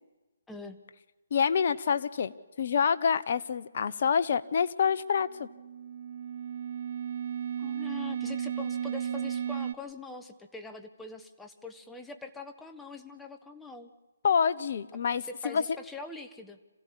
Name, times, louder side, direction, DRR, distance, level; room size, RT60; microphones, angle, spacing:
voice 1, 0.5-0.8 7.6-13.9 15.2-16.6, left 3 dB, 5° left, 6 dB, 1.4 m, -43 dB
voice 2, 1.3-2.3 2.6-5.5 14.2-15.6, left 6 dB, 50° left, 13 dB, 1.1 m, -27 dB
sound 1, 5.3-9.7, right 9 dB, 50° right, 1.3 m, -34 dB
27.0 x 16.0 x 8.4 m, 1.2 s
figure-of-eight pair, 150°, 0 cm